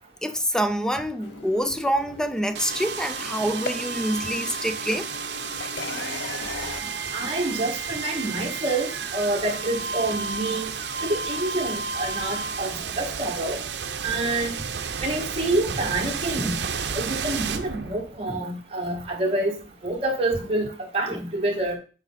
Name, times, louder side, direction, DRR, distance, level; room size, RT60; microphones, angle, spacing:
voice 1, 0.2-5.1 6.8-7.0 7.2-7.3 12.7-12.8 16.4-16.7 18.3-18.5 21.1-21.3, equal, 5° left, 0.4 m, -27 dB
sound 1, 1.2-6.8, left 4 dB, 90° left, 0.6 m, -38 dB
sound 2, 2.5-18.4, right 5 dB, 75° right, 0.7 m, -32 dB
sound 3, 5.8-7.9, right 3 dB, 20° left, 2.5 m, -44 dB
voice 2, 7.1-10.7 11.0-13.6 14.0-14.5 15.0-16.5 16.9-19.5 19.8-21.8, right 2 dB, 35° right, 1.9 m, -27 dB
8.0 x 4.9 x 4.1 m
head